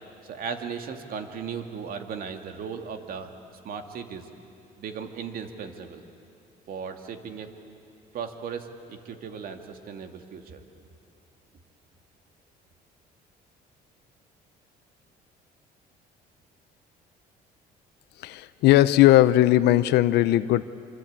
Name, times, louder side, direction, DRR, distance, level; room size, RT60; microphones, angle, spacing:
voice 1, 0.2-3.4 3.6-4.3 4.8-6.0 6.7-7.5 8.1-10.6, right 6 dB, 60° right, 6 dB, 2.3 m, -36 dB
voice 2, 18.2-20.6, left 14 dB, 80° left, 14 dB, 0.7 m, -18 dB
26.0 x 25.5 x 8.7 m, 2.6 s
cardioid pair, 110°, 17 cm